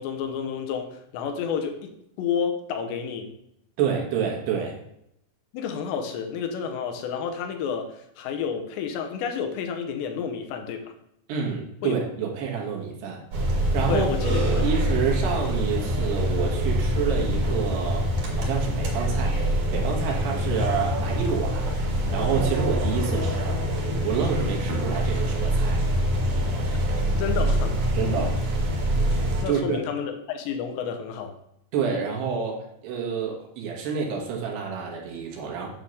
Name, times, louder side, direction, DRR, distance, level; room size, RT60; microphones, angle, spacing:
voice 1, 0.0-3.3 5.5-10.9 11.8-12.0 13.9-14.4 14.9-15.0 27.2-27.7 29.4-31.3, left 7 dB, 85° left, 5 dB, 3.1 m, -30 dB
voice 2, 3.8-4.8 11.3-13.2 13.7-14.1 14.6-18.1 18.4-21.7 22.1-23.6 24.0-25.8 27.9-28.4 29.4-29.8 31.7-35.7, right 6 dB, 75° right, -1 dB, 3.4 m, -28 dB
sound 1, 13.3-29.4, equal, 55° right, 2.7 m, -25 dB
8.9 x 3.7 x 6.4 m, 0.76 s
omnidirectional pair, 5.0 m